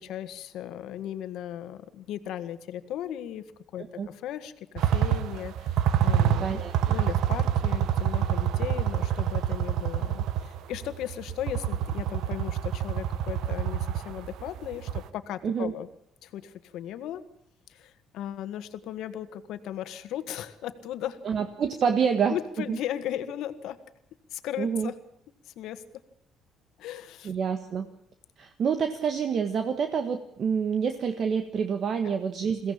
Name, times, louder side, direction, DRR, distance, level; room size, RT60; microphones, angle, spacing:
voice 1, 0.0-3.4 3.7-6.6 6.9-15.9 16.2-17.2 17.7-21.2 22.3-23.8 24.3-24.9 25.4-25.8 26.8-27.3 32.0-32.1, left 11 dB, 75° left, 11 dB, 1.7 m, -36 dB
sound 1, 4.8-15.1, right 10 dB, 70° right, 1.1 m, -26 dB
voice 2, 6.4-6.7 15.4-15.7 21.2-22.4 22.7-22.8 24.6-24.9 27.2-27.9 28.4-32.7, right 6 dB, 45° right, 7 dB, 1.5 m, -27 dB
22.5 x 16.5 x 8.7 m, 0.68 s
cardioid pair, 140°, 0 cm